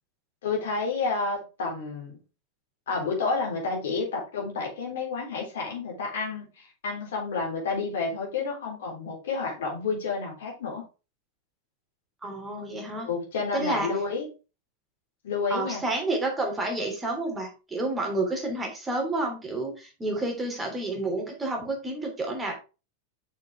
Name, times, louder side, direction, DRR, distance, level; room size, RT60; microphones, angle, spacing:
voice 1, 0.4-2.2 2.9-10.9 12.9-14.3 15.2-15.8, left 4 dB, 60° left, -1 dB, 3.6 m, -30 dB
voice 2, 12.2-13.1 13.5-13.9 15.5-22.5, right 2 dB, 15° right, 2 dB, 3.1 m, -30 dB
7.1 x 6.5 x 3.6 m, 0.31 s
figure-of-eight pair, 90°, 0 cm